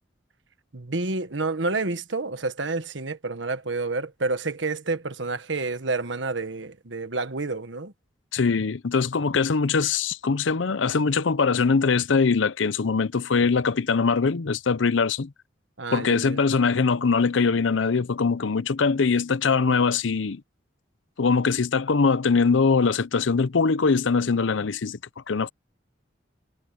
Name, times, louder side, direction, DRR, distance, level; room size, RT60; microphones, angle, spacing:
voice 1, 0.7-7.9 15.8-16.4, right 3 dB, 75° right, 1.5 m, -29 dB
voice 2, 8.3-15.3 15.9-20.4 21.2-25.0 25.3-25.5, left 5 dB, 85° left, 0.7 m, -22 dB
head